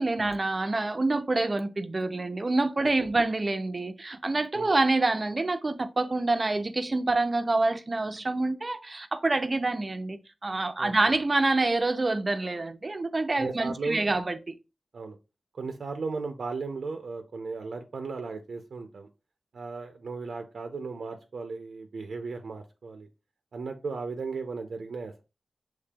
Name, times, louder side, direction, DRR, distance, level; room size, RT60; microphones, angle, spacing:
voice 1, 0.0-14.4, right 2 dB, 35° right, 0.5 m, -27 dB
voice 2, 13.4-14.1 14.9-15.2 15.5-19.1 19.5-23.1 23.5-25.2, right 4 dB, 85° right, 0.5 m, -36 dB
6.6 x 3.2 x 2.3 m
wide cardioid pair, 120°, 0 cm